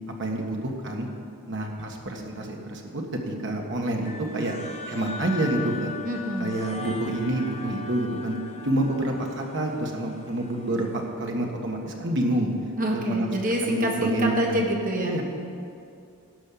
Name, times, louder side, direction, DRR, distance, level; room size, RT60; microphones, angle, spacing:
voice 1, 0.2-1.1 1.5-4.5 4.9-5.9 6.4-8.4 8.6-12.5 12.9-13.3 13.6-14.6 15.0-15.2, right 1 dB, 55° right, 1 dB, 1.5 m, -28 dB
sound 1, 4.0-11.1, left 4 dB, 30° left, 0.8 m, -40 dB
voice 2, 6.0-6.5 12.8-15.2, equal, 40° right, 0 dB, 1.3 m, -26 dB
12.5 x 5.5 x 8.6 m, 2.5 s
head